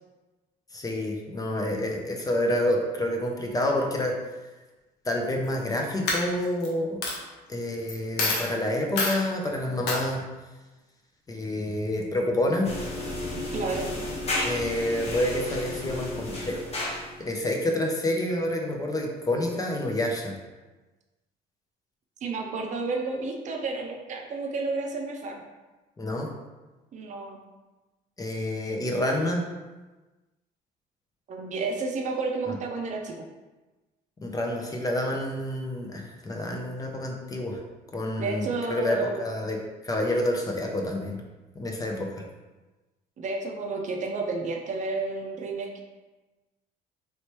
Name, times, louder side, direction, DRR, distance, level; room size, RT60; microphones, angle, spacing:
voice 1, 0.7-4.2 5.1-7.0 7.5-10.2 11.3-12.7 14.4-16.9 17.3-20.3 26.0-26.3 28.2-29.4 32.5-32.6 34.2-37.6 37.9-39.6 39.8-41.2 41.6-42.1, left 1 dB, 20° left, 1 dB, 0.5 m, -28 dB
Coin (dropping), 5.4-5.7 6.1-6.7 7.0-7.1 7.9-8.0 8.2-8.5 9.0-9.2 9.9-10.0, left 3 dB, 85° left, 0.8 m, -26 dB
sound 1, 12.6-17.3, left 1 dB, 40° left, 1.0 m, -32 dB
voice 2, 13.3-13.9 22.2-25.4 26.9-27.4 31.3-33.1 38.2-39.3 43.2-45.8, right 3 dB, 45° right, 2 dB, 0.5 m, -31 dB
3.1 x 3.0 x 2.9 m, 1.2 s
cardioid pair, 110°, 17 cm